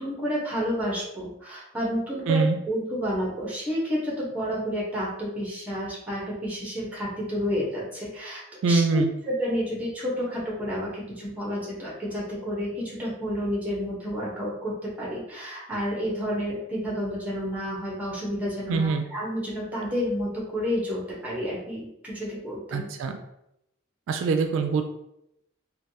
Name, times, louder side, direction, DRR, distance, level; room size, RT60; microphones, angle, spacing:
voice 1, 0.0-22.9, equal, 10° right, -5 dB, 0.9 m, -30 dB
voice 2, 8.6-9.1 18.7-19.1 22.7-23.2 24.1-24.8, right 4 dB, 80° right, 6 dB, 0.3 m, -23 dB
3.3 x 2.2 x 2.7 m, 0.80 s
head